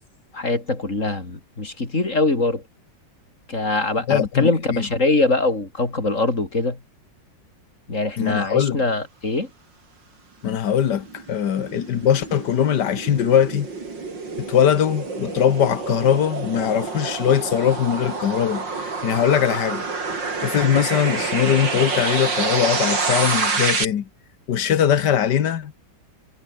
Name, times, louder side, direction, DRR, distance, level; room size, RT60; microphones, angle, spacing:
voice 1, 0.3-2.6 3.5-6.8 7.9-9.5, left 2 dB, 45° left, 4.4 m, -23 dB
voice 2, 4.1-4.9 8.2-8.8 10.4-13.7 14.4-19.9 20.4-24.1 24.5-25.7, left 9 dB, 70° left, 1.8 m, -21 dB
sound 1, 10.7-23.9, right 4 dB, 90° right, 4.5 m, -27 dB
omnidirectional pair, 1.9 m